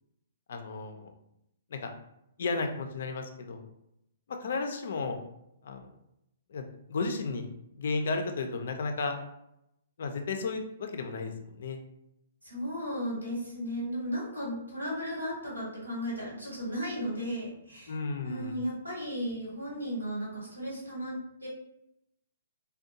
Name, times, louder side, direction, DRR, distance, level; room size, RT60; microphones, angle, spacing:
voice 1, 0.5-1.1 1.7-1.9 2.4-3.7 4.3-5.2 5.6-5.9 6.5-7.5 7.8-9.2 10.0-11.8 17.9-18.5, left 4 dB, 55° left, 5 dB, 0.4 m, -33 dB
voice 2, 12.4-18.0 18.2-21.5, equal, 85° right, -5 dB, 1.2 m, -35 dB
2.6 x 2.1 x 2.6 m, 0.80 s
figure-of-eight pair, 120°, 0 cm